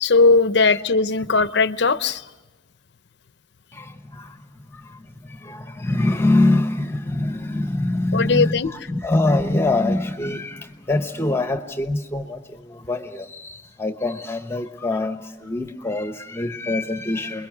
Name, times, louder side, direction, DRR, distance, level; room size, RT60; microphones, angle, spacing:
voice 1, 0.0-2.2 8.1-8.7, left 4 dB, 65° left, 14 dB, 0.7 m, -18 dB
voice 2, 3.7-17.5, left 2 dB, 15° left, 8 dB, 1.0 m, -24 dB
29.5 x 21.5 x 6.1 m, 1.1 s
head